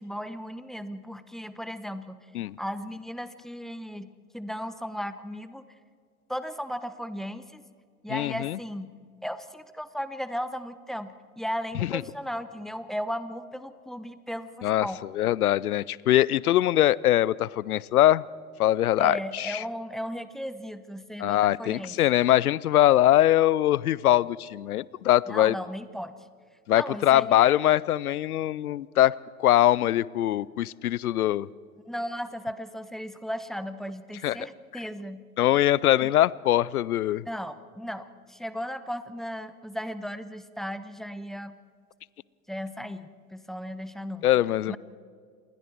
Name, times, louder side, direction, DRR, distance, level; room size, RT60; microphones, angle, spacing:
voice 1, 0.0-2.2 2.6-5.6 6.3-7.6 8.0-8.9 9.2-15.0 19.0-21.9 25.3-26.1 26.7-27.7 31.9-35.2 36.0-36.1 37.3-41.6 42.5-44.3 44.7-44.8, equal, ahead, 13 dB, 0.9 m, -36 dB
voice 2, 8.1-8.6 11.8-12.0 14.6-14.9 15.1-18.2 18.6-19.6 21.2-25.6 26.7-31.5 34.2-34.4 35.4-37.2 44.2-44.8, left 13 dB, 80° left, 23 dB, 0.6 m, -22 dB
28.0 x 21.0 x 4.6 m, 2.1 s
figure-of-eight pair, 80°, 44 cm